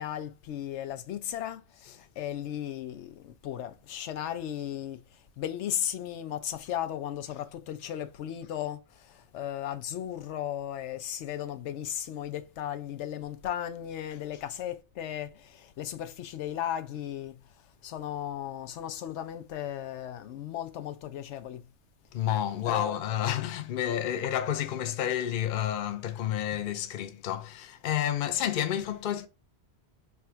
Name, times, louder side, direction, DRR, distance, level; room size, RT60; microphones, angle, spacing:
voice 1, 0.0-5.0 5.4-17.3 17.8-21.7 22.3-23.0, left 11 dB, 85° left, 0.9 m, -36 dB
voice 2, 22.1-29.3, left 10 dB, 55° left, 0.6 m, -30 dB
3.4 x 2.4 x 4.3 m
omnidirectional pair, 1.2 m